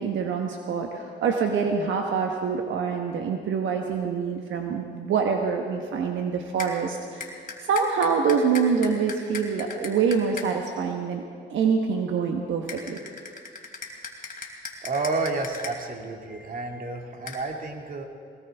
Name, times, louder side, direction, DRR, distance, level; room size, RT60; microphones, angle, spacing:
voice 1, 0.0-7.3 7.6-11.2 11.5-13.0, right 6 dB, 75° right, 3 dB, 1.2 m, -25 dB
sound 1, 6.6-6.7 7.2-10.5 12.7-15.7 17.3-17.4, left 5 dB, 40° left, 2.8 m, -37 dB
voice 2, 14.8-18.0, right 3 dB, 45° right, 2 dB, 2.3 m, -30 dB
20.5 x 19.0 x 3.5 m, 2.3 s
cardioid pair, 90°, 20 cm